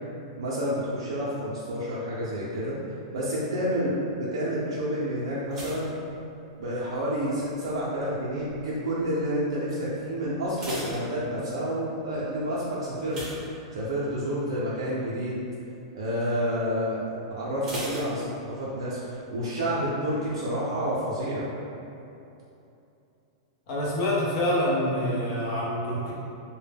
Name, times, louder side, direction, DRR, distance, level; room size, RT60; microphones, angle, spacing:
voice 1, 0.4-2.8 3.1-5.9 6.6-13.2 13.5-15.4 15.9-21.5, equal, 90° right, -8 dB, 0.4 m, -29 dB
sound 1, 5.5-7.0 7.2-7.7 8.3-8.7 9.0-9.1 9.5-9.6 10.2-11.8 13.0-14.2 14.6-14.8 15.2-15.3 17.6-18.8 19.1-19.2, right 1 dB, 20° right, 0.7 m, -38 dB
voice 2, 23.7-26.1, left 1 dB, 45° left, -6 dB, 0.7 m, -26 dB
2.1 x 2.1 x 3.3 m, 2.8 s
supercardioid pair, 155°, 3 cm